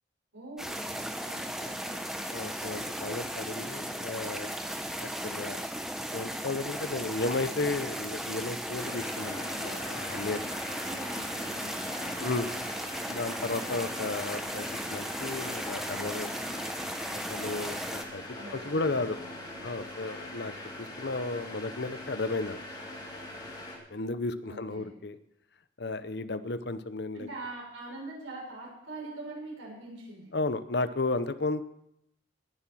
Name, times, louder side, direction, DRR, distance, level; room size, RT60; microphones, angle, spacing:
voice 1, 0.3-2.1 10.8-12.7 18.4-19.6 24.4-24.9 27.1-30.3, right 2 dB, 90° right, -3 dB, 6.5 m, -44 dB
sound 1, 0.6-18.0, equal, ahead, 0.9 m, -36 dB
voice 2, 2.3-4.5 5.0-5.6 6.1-10.4 12.2-12.6 13.1-16.4 17.3-18.2 18.5-19.2 19.6-20.5 20.8-22.6 23.9-25.2 25.8-27.3 30.3-31.6, left 3 dB, 55° left, 13 dB, 0.7 m, -33 dB
sound 2, 8.8-23.8, left 1 dB, 20° left, 2.8 m, -42 dB
19.0 x 7.4 x 6.2 m, 0.80 s
head